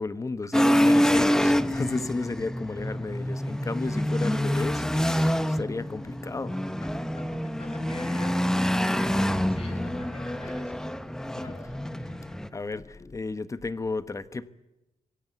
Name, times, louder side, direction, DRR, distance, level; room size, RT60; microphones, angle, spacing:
voice 1, 0.0-6.9 9.4-10.2 10.5-10.6 11.0-11.5 12.2-14.5, left 3 dB, 25° left, 13 dB, 1.2 m, -34 dB
sound 1, 0.5-12.5, equal, 5° left, 1.0 m, -26 dB
voice 2, 7.1-10.8 11.3-11.7, left 3 dB, 45° left, 4 dB, 7.8 m, -44 dB
26.5 x 22.5 x 8.2 m, 0.94 s
cardioid pair, 120°, 13 cm